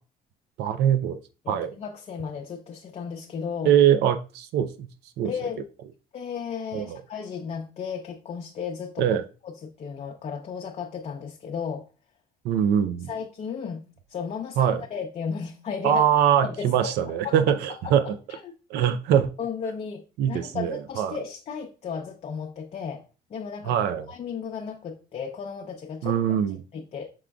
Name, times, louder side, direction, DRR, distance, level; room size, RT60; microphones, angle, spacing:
voice 1, 0.6-1.2 1.5-1.7 3.6-4.9 5.2-5.3 6.7-7.0 9.0-9.2 12.4-13.1 14.6-14.8 15.8-18.0 18.7-19.3 20.2-21.2 23.7-24.1 26.0-26.6, right 9 dB, 80° right, 10 dB, 0.5 m, -22 dB
voice 2, 1.4-3.7 5.2-5.6 6.1-9.2 9.4-11.9 13.1-13.8 14.1-16.0 16.4-17.4 17.8-18.5 19.4-23.0 23.3-26.4 26.7-27.1, left 6 dB, 40° left, 2 dB, 0.6 m, -34 dB
6.1 x 3.7 x 2.3 m, 0.34 s
cardioid pair, 110°, 17 cm